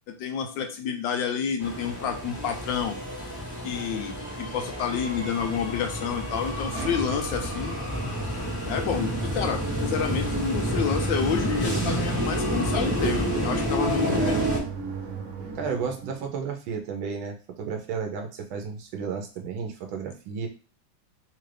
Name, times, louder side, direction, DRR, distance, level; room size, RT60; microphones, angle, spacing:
voice 1, 0.1-3.0 3.6-7.8 8.7-14.4, left 7 dB, 75° left, 5 dB, 1.3 m, -29 dB
sound 1, 1.6-14.6, equal, 10° right, 1.1 m, -29 dB
sound 2, 6.0-16.3, right 4 dB, 60° right, 1.1 m, -37 dB
voice 2, 14.0-14.5 15.5-20.5, right 5 dB, 90° right, 3 dB, 1.4 m, -32 dB
3.6 x 2.5 x 3.2 m, 0.34 s
omnidirectional pair, 2.1 m